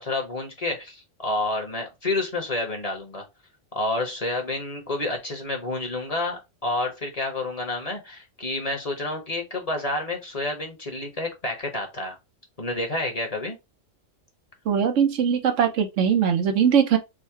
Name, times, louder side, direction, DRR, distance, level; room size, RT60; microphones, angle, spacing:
voice 1, 0.0-3.3 3.7-12.2 12.6-13.6, left 2 dB, 35° left, 1.0 m, -29 dB
voice 2, 14.7-17.0, right 8 dB, 85° right, 1.1 m, -21 dB
3.7 x 2.2 x 4.4 m
omnidirectional pair, 1.2 m